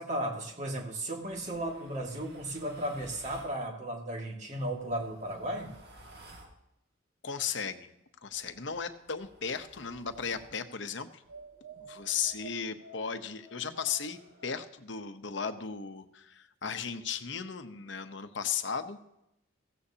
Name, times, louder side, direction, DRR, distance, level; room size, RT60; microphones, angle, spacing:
voice 1, 0.0-5.7, right 1 dB, 35° right, 1 dB, 2.2 m, -35 dB
sound 1, 1.2-3.6 4.5-6.6 8.2-10.6 11.2-14.7, right 2 dB, 50° right, 2.2 m, -54 dB
voice 2, 7.2-7.9 8.2-11.2 11.8-19.0, left 6 dB, 60° left, 9 dB, 0.9 m, -36 dB
16.5 x 15.5 x 2.9 m, 0.85 s
head